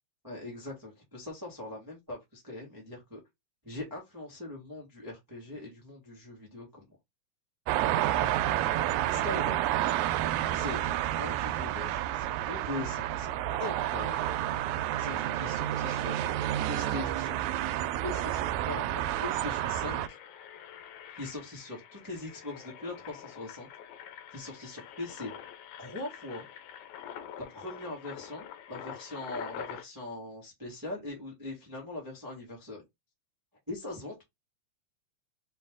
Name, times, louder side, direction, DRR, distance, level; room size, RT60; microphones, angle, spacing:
voice 1, 0.2-3.2 3.6-6.9 8.1-8.3 9.1-9.7 10.5-10.9 11.2-13.3 13.6-14.2 15.0-17.4 17.8-20.2 21.1-23.7 24.3-25.3 25.8-26.5 27.5-32.8 33.7-34.2, left 2 dB, 10° right, 0.9 m, -41 dB
sound 1, 7.7-20.1, right 13 dB, 85° right, 1.9 m, -30 dB
Engine, 18.4-18.7 19.1-29.8, left 9 dB, 80° left, 1.9 m, -46 dB
4.3 x 3.2 x 3.6 m
omnidirectional pair, 3.3 m